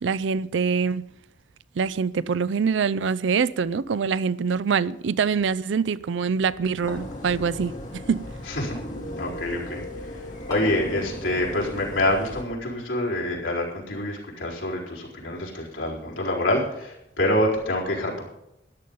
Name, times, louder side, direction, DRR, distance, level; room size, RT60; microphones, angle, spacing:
voice 1, 0.0-1.1 1.8-8.3, right 5 dB, 75° right, 0.4 m, -24 dB
sound 1, 6.8-12.4, equal, 40° left, 2.4 m, -36 dB
sound 2, 6.9-7.3 8.7-9.0 10.5-10.9, left 1 dB, 15° left, 2.1 m, -41 dB
voice 2, 8.5-8.8 9.2-10.2 10.5-18.2, left 1 dB, 85° left, 4.3 m, -26 dB
13.0 x 10.5 x 5.4 m
head